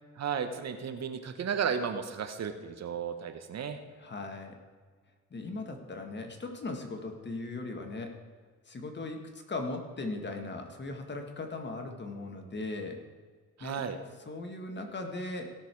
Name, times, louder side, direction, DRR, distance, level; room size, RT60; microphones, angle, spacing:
voice 1, 0.2-3.8 13.6-14.0, right 7 dB, 55° right, 8 dB, 1.2 m, -34 dB
voice 2, 3.9-4.6 5.3-8.2 8.7-13.0 13.6-13.8 14.2-15.5, left 2 dB, 35° left, 4 dB, 1.9 m, -38 dB
17.0 x 6.6 x 4.7 m, 1.5 s
cardioid pair, 85°, 31 cm